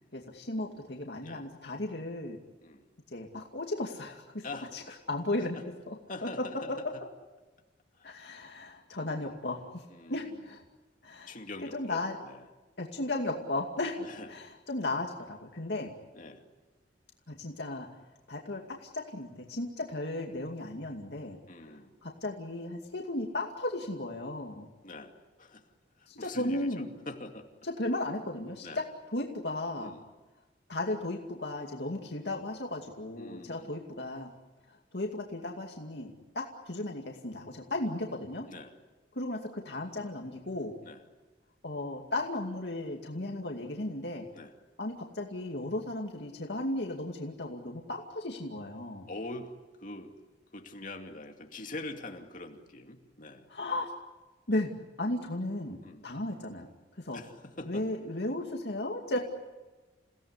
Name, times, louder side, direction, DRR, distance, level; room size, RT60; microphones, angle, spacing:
voice 1, 0.1-2.4 3.1-4.4 4.7-5.6 5.9-6.0 6.2-6.3 8.0-9.8 10.1-10.6 11.0-11.4 11.7-12.2 12.8-15.9 17.3-17.9 18.3-21.4 21.6-21.7 22.0-24.7 26.1-26.9 27.6-28.7 29.1-29.9 30.7-34.3 34.7-38.4 39.2-40.7 41.6-44.3 44.8-49.1 53.5-53.9 54.5-54.7 55.0-55.8 56.0-56.7 57.0-57.2 57.7-59.2, left 2 dB, 65° left, 1 dB, 2.4 m, -35 dB
voice 2, 6.1-6.7 7.9-8.1 9.9-10.4 11.3-12.5 14.0-14.3 16.1-16.4 21.5-21.9 24.8-25.1 25.4-25.7 26.0-27.5 28.6-28.8 29.8-30.1 33.2-33.7 38.5-38.7 40.8-41.0 44.3-44.5 49.1-50.1 50.5-53.5 55.8-56.1 57.1-57.9 59.1-59.2, left 2 dB, 45° left, 3 dB, 2.6 m, -44 dB
29.5 x 17.5 x 9.8 m, 1.2 s
head